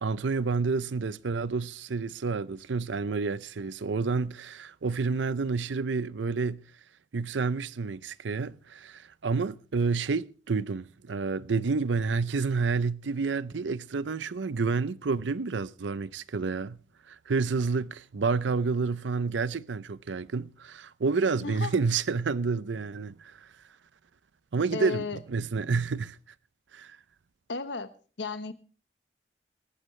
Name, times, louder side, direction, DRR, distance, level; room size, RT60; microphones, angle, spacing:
voice 1, 0.0-6.6 7.1-16.8 17.1-23.5 24.5-26.2 26.7-27.0, right 4 dB, 90° right, 0.6 m, -29 dB
voice 2, 24.7-25.2 27.5-27.9 28.2-28.5, left 4 dB, 80° left, 1.1 m, -33 dB
18.5 x 14.5 x 3.2 m
head